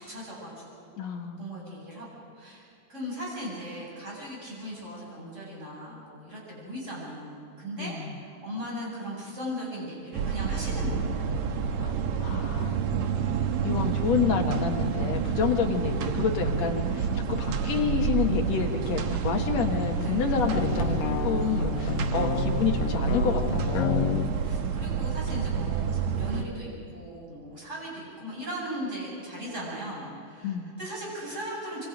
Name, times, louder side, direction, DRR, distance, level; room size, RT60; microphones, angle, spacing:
voice 1, 0.1-0.7 1.4-2.6 2.9-11.1 20.0-20.2 24.0-31.9, equal, 20° right, -4 dB, 7.8 m, -38 dB
voice 2, 1.0-1.7 7.8-8.1 11.8-11.9 12.2-12.8 13.6-24.2 30.4-30.7, left 6 dB, 60° left, 3 dB, 2.5 m, -29 dB
sound 1, 10.1-26.4, right 6 dB, 65° right, 2.2 m, -28 dB
sound 2, 20.5-24.3, left 9 dB, 90° left, 2.6 m, -30 dB
26.0 x 25.5 x 5.2 m, 2.6 s
omnidirectional pair, 3.8 m